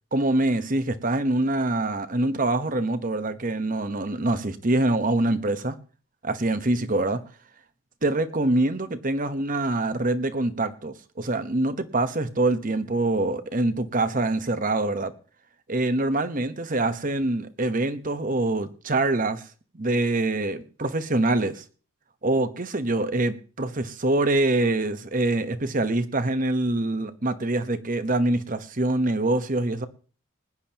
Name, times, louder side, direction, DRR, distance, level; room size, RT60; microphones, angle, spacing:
voice 1, 0.1-5.8 6.2-7.2 8.0-15.1 15.7-19.4 19.7-21.6 22.2-29.9, right 2 dB, 40° right, 1.1 m, -25 dB
20.5 x 11.0 x 2.9 m
head